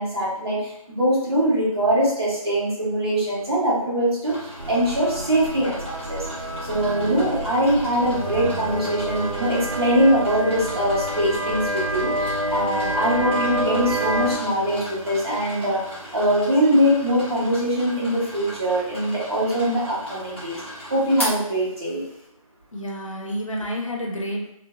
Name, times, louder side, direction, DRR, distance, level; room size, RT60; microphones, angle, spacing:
voice 1, 0.0-15.8 16.1-20.6 20.9-22.0, equal, 45° right, -8 dB, 1.2 m, -22 dB
sound 1, 4.2-22.2, equal, 20° left, 0.7 m, -37 dB
sound 2, 4.6-14.4, right 1 dB, 65° right, 0.7 m, -28 dB
voice 2, 22.7-24.5, equal, 60° left, -1 dB, 0.8 m, -29 dB
3.0 x 2.1 x 2.3 m, 0.76 s
figure-of-eight pair, 175°, 19 cm